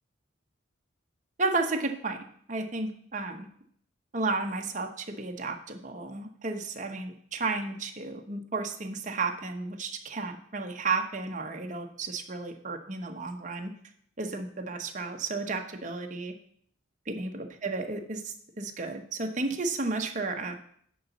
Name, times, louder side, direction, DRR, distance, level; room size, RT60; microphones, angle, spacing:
voice 1, 1.4-3.5 4.1-13.7 14.2-16.3 17.1-20.5, right 3 dB, 40° right, 4 dB, 0.9 m, -33 dB
10.0 x 4.0 x 7.0 m, 0.62 s
head